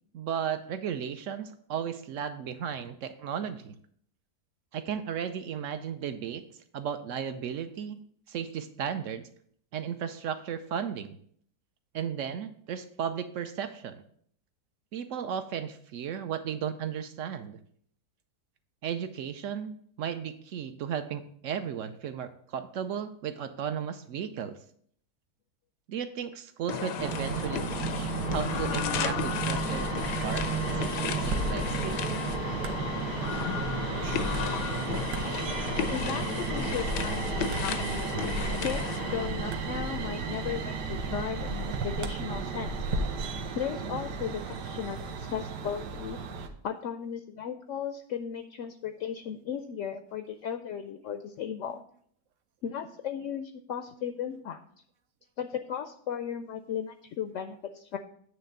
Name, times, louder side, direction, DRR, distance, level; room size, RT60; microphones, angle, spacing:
voice 1, 0.1-3.7 4.7-6.4 6.7-8.0 8.3-9.3 9.7-11.2 11.9-14.0 14.9-17.6 18.8-24.6 25.9-32.1, right 8 dB, 65° right, 10 dB, 0.8 m, -35 dB
sound 1, 26.7-39.3, left 8 dB, 85° left, 1.2 m, -34 dB
sound 2, 27.0-46.5, right 4 dB, 85° right, 1.4 m, -33 dB
voice 2, 35.9-37.9 38.6-42.8 43.5-46.2 46.6-51.8 52.6-54.6 55.4-58.0, left 8 dB, 70° left, 8 dB, 0.7 m, -36 dB
9.2 x 3.4 x 6.4 m, 0.62 s
omnidirectional pair, 1.8 m